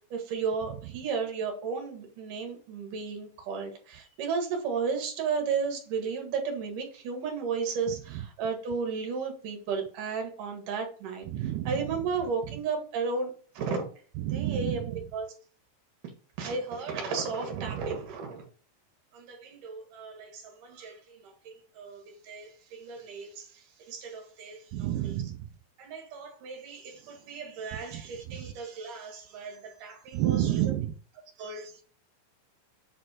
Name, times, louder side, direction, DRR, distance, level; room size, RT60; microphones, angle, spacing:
voice 1, 0.1-13.8 14.3-15.3 16.4-18.4 19.1-25.2 25.8-30.6 31.4-31.8, right 5 dB, 60° right, 3 dB, 3.2 m, -34 dB
voice 2, 11.3-11.8 14.2-15.0 17.6-17.9 24.7-25.5 27.9-28.4 30.1-31.0, right 13 dB, 85° right, 6 dB, 2.5 m, -30 dB
7.8 x 4.2 x 4.4 m, 0.41 s
omnidirectional pair, 4.5 m